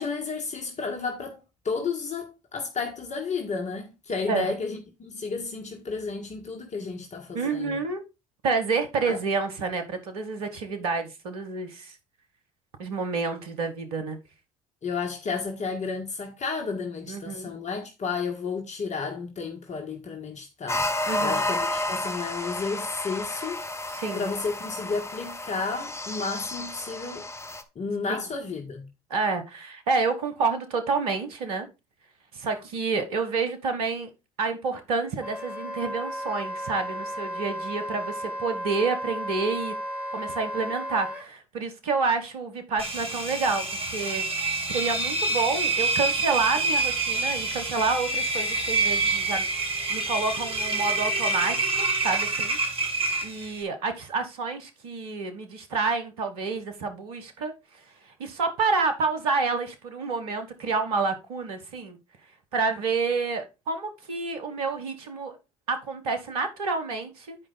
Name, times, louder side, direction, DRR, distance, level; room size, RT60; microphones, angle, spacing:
voice 1, 0.0-1.4 1.6-7.8 9.1-9.2 14.8-20.9 21.2-23.6 24.1-27.3 27.7-28.9, left 4 dB, 40° left, 1.6 m, -32 dB
voice 2, 7.3-8.0 8.4-12.0 12.8-14.2 17.1-17.5 21.1-21.4 23.9-24.3 28.1-28.2 29.1-31.7 32.3-34.1 34.4-39.7 40.1-52.6 53.2-57.5 58.0-62.0 62.5-65.4 65.7-67.4, right 4 dB, 80° right, 1.3 m, -29 dB
sound 1, 20.7-27.6, left 1 dB, 15° left, 1.2 m, -31 dB
Wind instrument woodwind instrument, 35.2-41.2, equal, 5° right, 2.0 m, -34 dB
Engine, 42.8-53.6, right 3 dB, 30° right, 2.3 m, -27 dB
9.5 x 5.0 x 3.9 m
hypercardioid pair, 55°, 19 cm